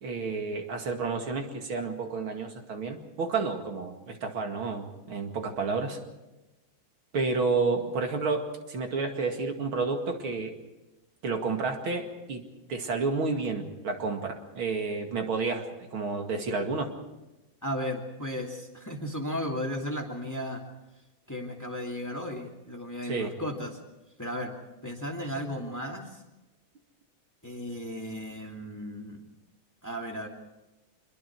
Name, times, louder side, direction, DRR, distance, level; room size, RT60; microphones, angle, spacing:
voice 1, 0.0-6.0 7.1-10.5 11.2-12.4 12.7-16.9 23.0-23.3, right 4 dB, 75° right, 4 dB, 3.0 m, -30 dB
voice 2, 17.6-20.6 21.3-23.7 24.2-24.5 24.8-26.2 27.4-29.2 29.8-30.3, equal, 10° left, 1 dB, 2.4 m, -35 dB
25.5 x 22.5 x 4.8 m, 1.0 s
omnidirectional pair, 2.3 m